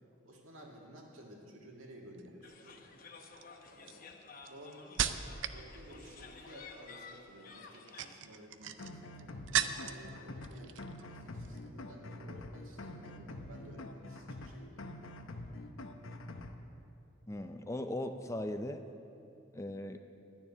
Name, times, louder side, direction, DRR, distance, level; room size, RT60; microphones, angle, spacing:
voice 1, 0.2-2.9 3.7-4.2 4.5-5.2 5.5-14.9, equal, 80° right, 0 dB, 2.1 m, -54 dB
sound 1, 2.1-2.5 3.2-5.6 5.9-6.4 7.7-10.1 10.4-11.1 11.3-11.6, right 9 dB, 60° right, 0.5 m, -37 dB
sound 2, 2.4-8.1, left 4 dB, 45° left, 0.9 m, -53 dB
sound 3, 8.8-16.5, left 1 dB, 80° left, 0.9 m, -46 dB
voice 2, 17.3-18.8 19.5-20.0, left 1 dB, 15° left, 7 dB, 0.4 m, -38 dB
12.0 x 7.1 x 9.6 m, 2.7 s
head